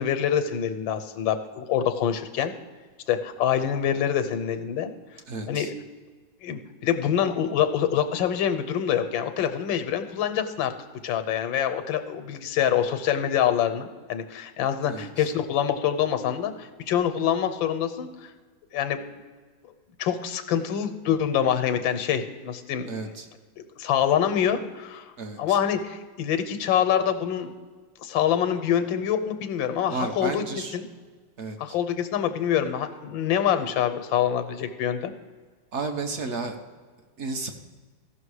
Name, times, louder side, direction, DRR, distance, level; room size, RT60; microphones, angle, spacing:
voice 1, 0.0-2.5 3.1-4.9 5.5-5.7 6.4-10.7 11.0-18.3 18.7-19.0 20.0-23.1 23.8-25.1 25.4-27.5 28.0-30.4 30.7-30.9 31.6-35.1, left 9 dB, 85° left, 9 dB, 1.5 m, -25 dB
voice 2, 5.3-5.7 14.9-15.3 22.9-23.3 25.2-25.6 29.9-30.8 31.4-31.6 35.7-36.6 37.2-37.5, right 3 dB, 50° right, 5 dB, 0.9 m, -32 dB
15.0 x 6.0 x 4.8 m, 1.5 s
omnidirectional pair, 2.0 m